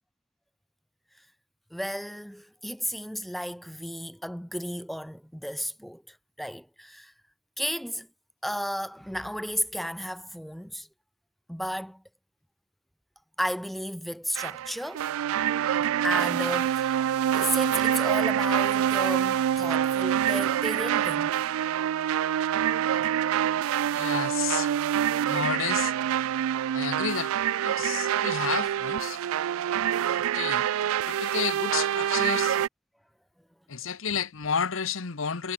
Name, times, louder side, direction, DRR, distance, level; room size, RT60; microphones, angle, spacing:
voice 1, 1.7-7.1 7.6-8.1 8.4-10.9 11.5-12.0 13.4-15.1 16.0-17.0 17.3-21.4, equal, ahead, 2.5 m, -33 dB
sound 1, 14.4-32.7, right 10 dB, 85° right, 0.3 m, -26 dB
voice 2, 23.9-24.7 25.3-25.9 26.7-27.3 27.6-29.2 30.3-30.7 31.1-32.6 33.7-35.5, left 7 dB, 70° left, 1.0 m, -31 dB
head